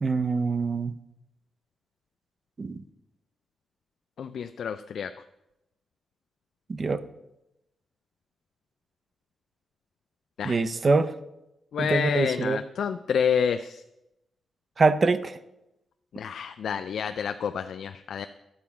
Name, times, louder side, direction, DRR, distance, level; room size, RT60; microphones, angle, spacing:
voice 1, 0.0-0.9 2.6-2.8 6.7-7.0 10.4-11.1 11.8-12.6 14.8-15.4, right 3 dB, 40° right, 13 dB, 0.6 m, -24 dB
voice 2, 4.2-5.1 10.4-10.6 11.7-13.8 16.1-18.3, left 7 dB, 75° left, 9 dB, 0.3 m, -28 dB
11.0 x 4.7 x 7.2 m, 0.91 s
cardioid pair, 90°, 0 cm